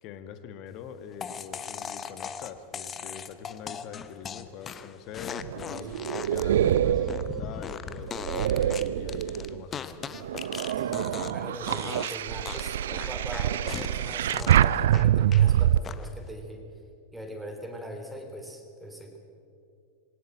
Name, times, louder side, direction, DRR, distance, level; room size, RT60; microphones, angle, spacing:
voice 1, 0.0-5.9 6.3-10.2, left 8 dB, 40° left, 10 dB, 1.5 m, -43 dB
sound 1, 1.2-11.4 11.7-12.2 12.5-15.5 15.8-16.3, left 7 dB, 25° left, 0.9 m, -39 dB
sound 2, 5.4-9.6 10.1-15.8, right 11 dB, 60° right, 0.4 m, -25 dB
voice 2, 10.8-16.6 17.1-19.2, equal, 5° right, 2 dB, 3.5 m, -41 dB
20.5 x 18.5 x 7.5 m, 2.6 s
figure-of-eight pair, 90°, 0 cm